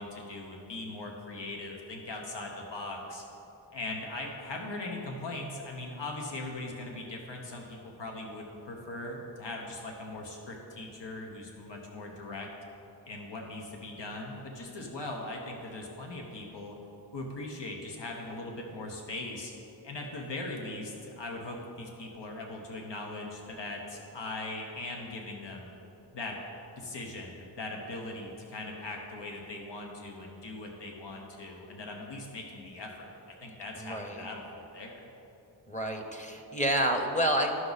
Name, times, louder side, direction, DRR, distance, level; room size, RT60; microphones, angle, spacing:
voice 1, 0.0-3.2 3.7-12.5 13.0-16.8 17.1-19.5 19.8-25.7 26.1-26.4 26.8-35.1, left 2 dB, 80° left, 1 dB, 1.0 m, -40 dB
voice 2, 33.8-34.3 35.7-37.5, right 1 dB, 15° left, 3 dB, 0.8 m, -29 dB
11.0 x 6.0 x 4.0 m, 3.0 s
wide cardioid pair, 85°, 42 cm